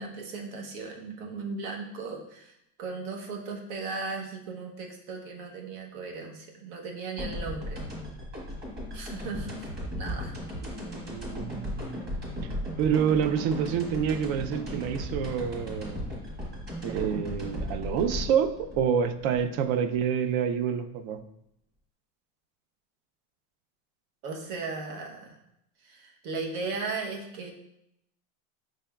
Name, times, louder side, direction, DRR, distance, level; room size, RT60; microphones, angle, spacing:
voice 1, 0.0-7.9 8.9-9.7 10.0-10.3 24.2-25.4 25.8-27.5, right 4 dB, 75° right, 1 dB, 1.0 m, -37 dB
sound 1, 7.2-20.0, equal, 25° right, 1.5 m, -36 dB
voice 2, 10.6-12.0 12.8-16.0 16.8-21.2, right 8 dB, 60° right, 10 dB, 0.5 m, -28 dB
6.0 x 3.4 x 2.3 m, 0.81 s
supercardioid pair, 135°, 43 cm